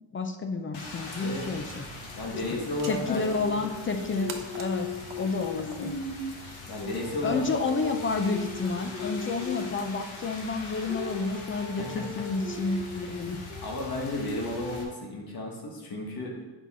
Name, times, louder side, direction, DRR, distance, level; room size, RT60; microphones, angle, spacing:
voice 1, 0.1-1.9 2.3-2.4 2.8-4.9 5.2-5.9 7.2-13.4, left 4 dB, 25° left, 6 dB, 0.4 m, -30 dB
Rain, 0.7-14.8, left 3 dB, 80° left, 1.6 m, -38 dB
voice 2, 1.2-1.5 2.1-3.5 6.7-7.4 11.8-12.0 13.6-16.4, left 2 dB, 50° left, 0 dB, 1.5 m, -33 dB
sound 1, 1.3-8.9, right 6 dB, 80° right, 1.1 m, -49 dB
8.4 x 5.5 x 4.2 m, 1.2 s
cardioid pair, 155°, 47 cm